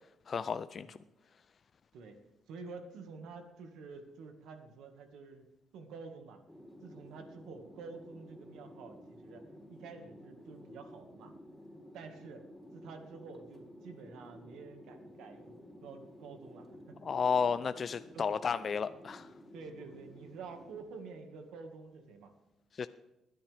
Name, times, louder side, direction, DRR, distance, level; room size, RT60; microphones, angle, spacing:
voice 1, 0.3-1.0 17.0-19.3 22.8-22.9, left 6 dB, 45° left, 12 dB, 0.4 m, -32 dB
voice 2, 2.5-5.5 5.7-6.4 6.8-11.3 11.9-12.5 12.7-15.6 15.8-17.1 18.1-18.3 19.5-22.3, right 4 dB, 85° right, 6 dB, 1.8 m, -49 dB
sound 1, 6.5-20.8, equal, 5° left, 3.9 m, -53 dB
20.5 x 10.0 x 3.5 m, 0.95 s
cardioid pair, 90°, 0 cm